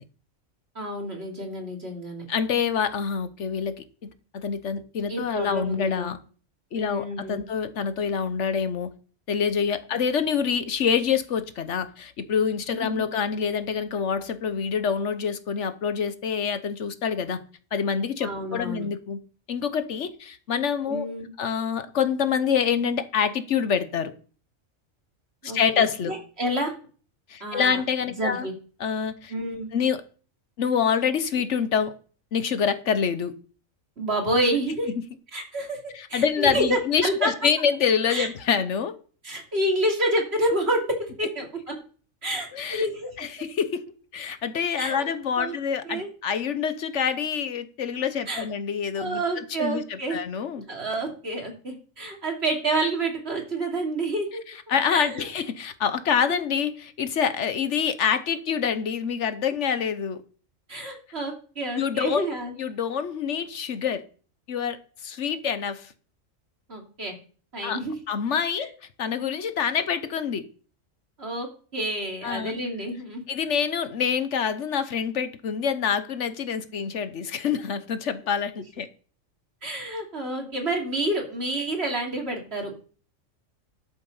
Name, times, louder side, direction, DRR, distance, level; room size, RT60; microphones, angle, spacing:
voice 1, 0.7-2.3 5.1-6.1 6.7-7.4 12.7-13.1 18.2-18.9 20.9-21.3 25.4-26.7 27.4-27.8 28.1-28.5 29.3-29.7 34.0-34.9 35.3-35.8 36.1-37.3 38.1-38.3 39.2-41.7 42.2-43.3 44.8-45.1 45.4-45.5 45.9-46.1 48.3-48.4 49.0-50.2 50.7-54.4 54.9-55.3 56.3-56.4 60.7-62.5 66.7-67.1 67.5-67.9 68.6-68.7 71.2-73.2 79.6-82.8, right 1 dB, 50° right, 1 dB, 3.0 m, -29 dB
voice 2, 2.3-6.2 6.7-8.9 9.3-17.4 17.7-19.2 19.5-21.0 21.4-24.1 25.4-26.1 27.3-28.5 28.8-29.3 29.7-30.0 30.6-31.9 32.3-33.3 35.9-38.9 42.5-42.9 43.2-43.8 44.1-49.2 49.6-50.6 54.7-60.2 61.7-62.3 62.6-64.0 64.5-65.9 67.6-67.8 68.1-68.7 69.0-70.4 72.2-72.5 73.3-78.9, left 7 dB, 60° left, 11 dB, 1.2 m, -26 dB
12.5 x 6.8 x 5.4 m, 0.41 s
omnidirectional pair, 1.4 m